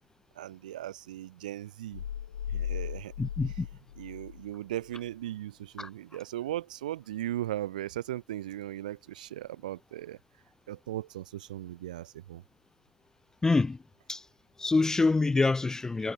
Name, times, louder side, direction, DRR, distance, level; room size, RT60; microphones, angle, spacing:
voice 1, 0.3-2.0 2.5-3.1 4.0-10.2 10.7-12.4 16.0-16.1, right 13 dB, 70° right, 3.4 m, -38 dB
sound 1, 1.9-4.5 4.8-5.0, left 9 dB, 75° left, 0.6 m, -37 dB
voice 2, 3.2-3.7 5.8-5.9 13.4-13.8 14.1-14.2 14.6-16.1, left 3 dB, 15° left, 0.4 m, -26 dB
figure-of-eight pair, 75°, 4 cm